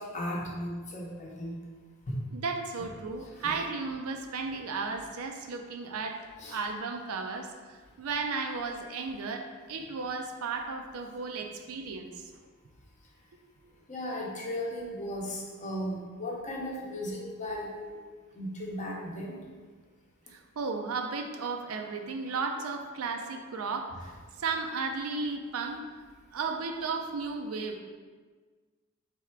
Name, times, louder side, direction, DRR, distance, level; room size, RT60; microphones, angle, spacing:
voice 1, 0.0-1.6 2.1-2.2 3.4-3.5 6.4-6.6 13.9-18.0 18.4-19.4, left 1 dB, 35° left, -2 dB, 0.8 m, -36 dB
voice 2, 2.3-12.1 13.3-13.4 20.3-25.8 26.3-27.8, right 4 dB, 75° right, 4 dB, 0.5 m, -34 dB
3.5 x 3.3 x 4.5 m, 1.5 s
head